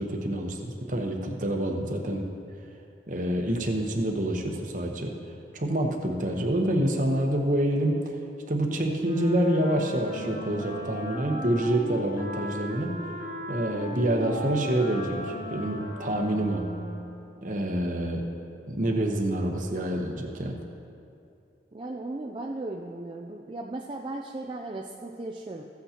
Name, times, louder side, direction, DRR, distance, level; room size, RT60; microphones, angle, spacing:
voice 1, 0.0-2.2 3.1-5.1 5.5-8.0 8.5-13.0 13.5-16.6 17.4-18.2 18.7-20.6, right 1 dB, 45° right, 2 dB, 0.9 m, -27 dB
Wind instrument woodwind instrument, 9.0-17.2, equal, 70° left, 1.8 m, -37 dB
sound 1, 14.1-16.6, equal, 20° left, 0.7 m, -44 dB
voice 2, 21.7-25.6, right 2 dB, 25° right, 0 dB, 0.4 m, -36 dB
15.0 x 8.2 x 2.9 m, 2.5 s
head